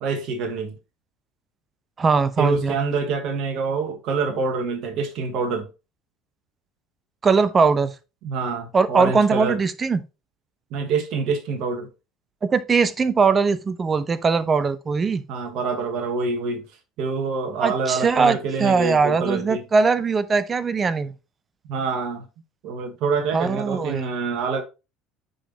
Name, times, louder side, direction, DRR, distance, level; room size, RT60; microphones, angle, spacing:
voice 1, 0.0-0.8 2.4-5.7 8.2-9.6 10.7-11.9 15.3-16.7 17.0-19.6 21.7-22.2 22.6-24.6, right 4 dB, 55° right, 1.3 m, -26 dB
voice 2, 2.0-2.8 7.2-7.9 8.7-10.0 12.4-15.2 17.6-21.1 23.3-24.0, right 4 dB, 30° right, 0.8 m, -20 dB
9.9 x 4.1 x 2.9 m
figure-of-eight pair, 65°, 0 cm